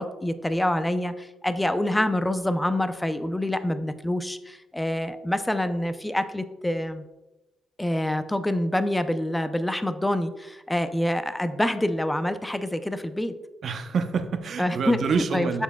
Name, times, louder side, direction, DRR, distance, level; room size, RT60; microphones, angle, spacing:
voice 1, 0.0-7.0 7.8-13.3 14.6-15.0 15.3-15.6, left 1 dB, 10° left, 10 dB, 0.5 m, -26 dB
voice 2, 13.6-15.6, right 5 dB, 55° right, 8 dB, 0.7 m, -27 dB
7.1 x 6.8 x 2.2 m, 1.0 s
cardioid pair, 90°, 0 cm